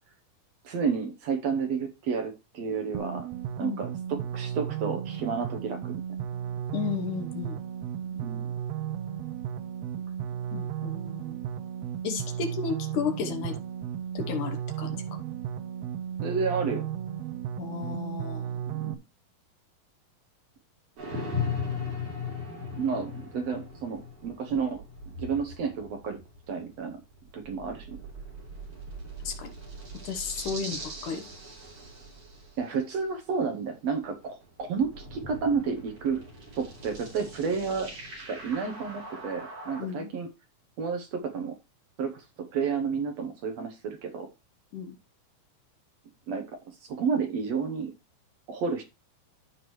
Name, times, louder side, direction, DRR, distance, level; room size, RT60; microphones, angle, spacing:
voice 1, 0.6-3.3 3.6-5.9 8.0-8.5 16.2-16.9 18.7-19.0 22.8-24.8 25.2-26.2 26.5-27.0 27.3-27.9 32.6-36.2 36.6-40.3 40.8-41.5 42.0-44.3 46.3-46.4 46.8-47.9 48.5-48.8, right 5 dB, 65° right, 1.9 m, -31 dB
sound 1, 2.9-18.9, right 9 dB, 85° right, 1.4 m, -34 dB
voice 2, 6.7-7.6 10.5-11.4 12.0-13.6 14.1-15.2 17.6-18.6 29.2-29.5 30.0-31.3 39.8-40.1 44.7-45.0, left 6 dB, 75° left, 2.5 m, -33 dB
sound 2, 21.0-33.2 33.9-39.8, left 3 dB, 50° right, 4.7 m, -39 dB
14.0 x 5.0 x 3.1 m
omnidirectional pair, 3.8 m